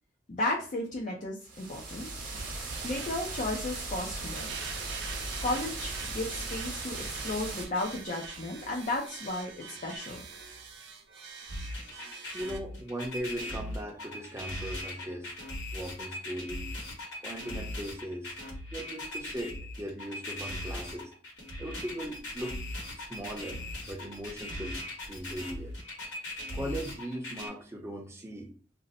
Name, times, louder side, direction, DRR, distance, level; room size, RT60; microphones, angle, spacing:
voice 1, 0.3-2.1 2.8-4.6 5.4-10.2, left 2 dB, 45° left, 0.5 m, -34 dB
sound 1, 1.4-7.6, right 2 dB, 50° right, 0.8 m, -38 dB
sound 2, 2.3-12.6, right 5 dB, 85° right, 0.6 m, -44 dB
sound 3, 11.5-27.5, left 1 dB, 85° left, 1.2 m, -39 dB
voice 2, 12.3-15.3 15.7-16.7 17.2-18.4 18.7-21.1 21.6-22.6 22.9-25.7 26.0-26.1 26.5-28.5, right 1 dB, 15° right, 0.6 m, -39 dB
2.6 x 2.0 x 4.0 m
head